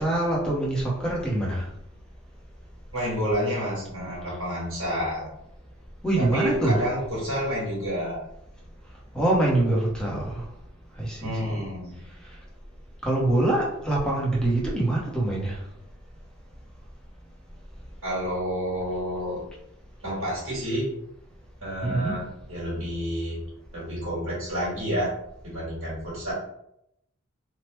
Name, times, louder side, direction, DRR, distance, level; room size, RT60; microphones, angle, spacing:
voice 1, 0.0-1.7 6.0-6.9 9.1-10.4 11.0-11.6 13.0-15.6 21.8-22.2, right 1 dB, 5° left, -4 dB, 0.7 m, -24 dB
voice 2, 2.9-5.3 6.2-8.2 11.2-12.1 18.0-19.4 20.0-20.9 21.6-23.4 23.7-25.1 25.4-26.3, equal, 65° right, -9 dB, 1.5 m, -29 dB
3.1 x 2.1 x 3.1 m, 0.77 s
head